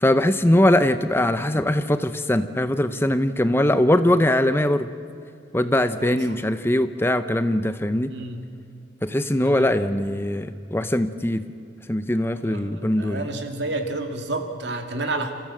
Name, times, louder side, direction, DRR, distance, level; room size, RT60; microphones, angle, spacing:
voice 1, 0.0-4.9 5.5-8.1 9.0-11.4 11.9-13.3, left 1 dB, 10° left, 11 dB, 0.6 m, -21 dB
voice 2, 8.1-8.4 9.4-9.8 12.4-15.3, right 2 dB, 65° right, 5 dB, 2.4 m, -30 dB
29.0 x 15.0 x 7.6 m, 2.5 s
head